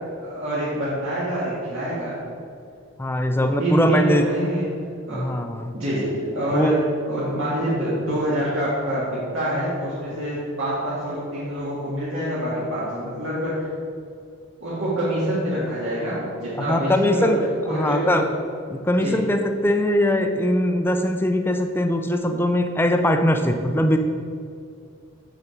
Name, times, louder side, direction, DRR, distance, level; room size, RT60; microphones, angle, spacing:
voice 1, 0.2-2.2 3.4-4.7 5.0-5.3 5.7-6.8 7.1-13.7 14.6-17.3 17.6-18.3 19.0-19.2, right 1 dB, 75° right, -10 dB, 2.0 m, -26 dB
voice 2, 3.0-4.2 5.1-5.7 6.5-6.8 16.6-17.4 17.7-18.2 18.7-24.0, left 1 dB, 10° left, 6 dB, 0.4 m, -21 dB
6.8 x 6.7 x 4.5 m, 2.3 s
head